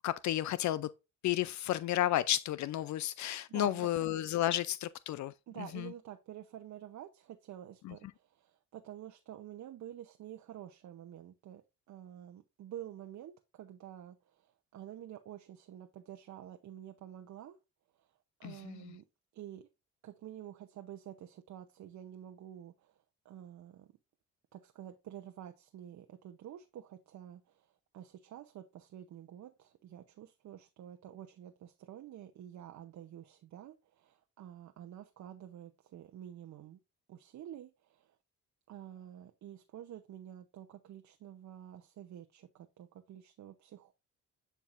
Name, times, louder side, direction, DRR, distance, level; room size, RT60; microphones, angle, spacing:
voice 1, 0.0-0.9 1.2-5.3 5.7-5.9 7.8-7.9 18.4-18.8, left 13 dB, 70° left, 0.5 m, -32 dB
voice 2, 3.5-3.9 5.5-17.6 17.9-18.1 18.4-19.0 19.3-19.7 20.0-23.0 23.2-23.9 24.5-36.8 37.1-38.2 38.7-43.9, right 11 dB, 65° right, 0.8 m, -49 dB
8.9 x 4.6 x 2.5 m
cardioid pair, 90°, 30 cm